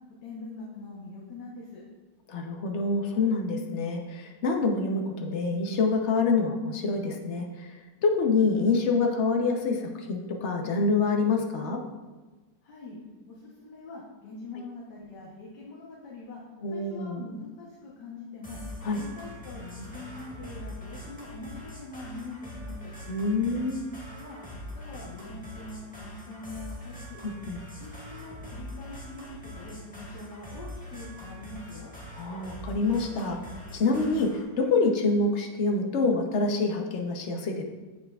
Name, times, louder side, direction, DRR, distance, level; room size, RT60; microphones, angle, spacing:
voice 1, 0.2-1.8 12.6-13.0 13.3-16.4 16.7-18.6 18.9-22.9 24.1-27.2 27.8-31.9, left 3 dB, 75° left, -5 dB, 1.6 m, -43 dB
voice 2, 2.3-11.8 16.6-17.2 18.8-19.0 23.1-23.9 27.2-27.6 32.1-37.6, left 3 dB, 55° left, 2 dB, 0.9 m, -26 dB
sound 1, 18.4-34.4, left 1 dB, 5° left, 1.1 m, -43 dB
7.7 x 6.6 x 2.3 m, 1.2 s
omnidirectional pair, 1.8 m